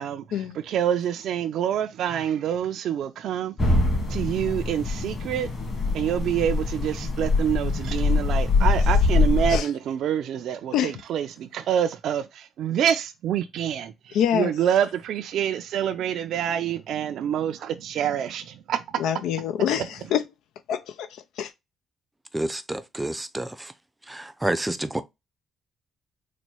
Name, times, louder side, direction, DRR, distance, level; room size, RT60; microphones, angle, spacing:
voice 1, 0.0-3.5 4.1-5.5 5.9-19.0, right 9 dB, 75° right, 0.4 m, -27 dB
sound 1, 3.6-9.6, left 3 dB, 40° left, 1.9 m, -23 dB
voice 2, 14.1-14.5 19.0-20.2 20.7-21.1 21.4-21.5, left 9 dB, 85° left, 0.4 m, -25 dB
voice 3, 22.3-23.7 24.1-25.0, right 1 dB, 10° right, 0.5 m, -29 dB
4.2 x 2.2 x 4.5 m
cardioid pair, 90°, 0 cm